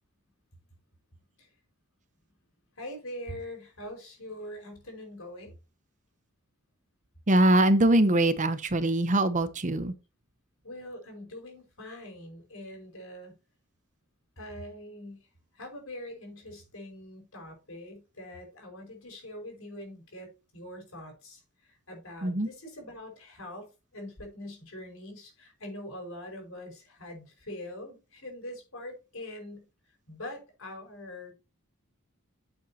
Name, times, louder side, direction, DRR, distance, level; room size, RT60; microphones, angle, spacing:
voice 1, 2.8-5.6 10.6-13.3 14.4-15.2 15.5-29.7 30.1-31.3, left 1 dB, 70° left, 5.3 m, -43 dB
voice 2, 7.3-9.9 22.2-22.5, right 1 dB, 35° right, 0.9 m, -23 dB
9.8 x 7.9 x 2.9 m
head